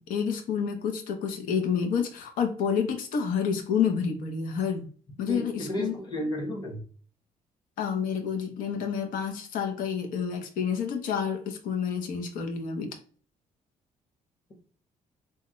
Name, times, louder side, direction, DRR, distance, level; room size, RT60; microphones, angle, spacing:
voice 1, 0.0-4.9 5.2-5.9 7.8-12.9, left 7 dB, 80° left, 0.7 m, -29 dB
voice 2, 5.3-6.8, equal, 30° left, 1.3 m, -32 dB
3.4 x 2.2 x 2.9 m
cardioid pair, 115°, 14 cm